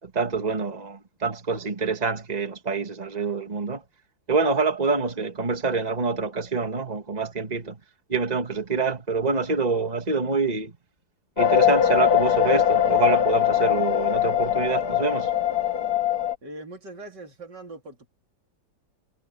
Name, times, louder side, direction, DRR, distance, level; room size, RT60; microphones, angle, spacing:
voice 1, 0.0-3.8 4.3-7.8 8.1-10.7 11.4-15.3, right 4 dB, 25° right, 2.1 m, -26 dB
sound 1, 11.4-16.3, left 9 dB, 65° left, 1.9 m, -21 dB
voice 2, 16.4-18.1, right 2 dB, 80° right, 3.9 m, -41 dB
omnidirectional pair, 1.8 m